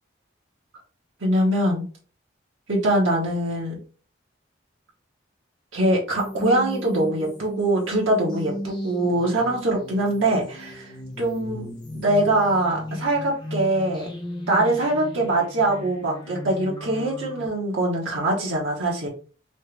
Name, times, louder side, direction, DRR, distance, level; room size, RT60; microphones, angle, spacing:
voice 1, 1.2-1.8 2.7-3.8 5.7-11.7 11.9-14.1 14.5-19.1, right 1 dB, 90° right, -3 dB, 1.0 m, -23 dB
sound 1, 6.2-17.5, left 1 dB, 25° left, 0.7 m, -36 dB
3.3 x 2.9 x 3.2 m, 0.41 s
head